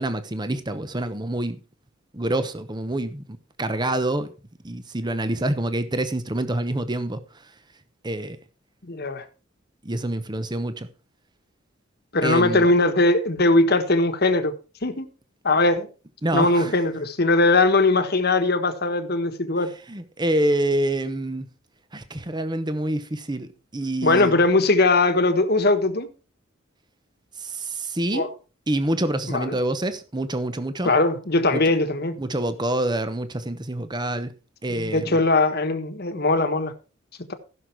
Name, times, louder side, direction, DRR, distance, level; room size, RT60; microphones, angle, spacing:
voice 1, 0.0-1.6 2.1-4.3 4.6-7.5 8.0-8.4 9.8-10.9 12.2-12.7 16.2-16.8 19.9-21.5 21.9-24.4 27.4-28.3 28.7-30.9 31.5-31.6 32.2-34.3 34.6-35.2, right 1 dB, 20° right, 0.9 m, -27 dB
voice 2, 8.8-9.2 12.1-14.5 14.8-15.1 15.4-15.9 16.3-19.7 24.0-26.1 28.1-28.3 29.3-29.6 30.8-32.2 34.7-36.7 37.3-37.4, left 2 dB, 50° left, 1.5 m, -20 dB
15.5 x 6.5 x 4.6 m
head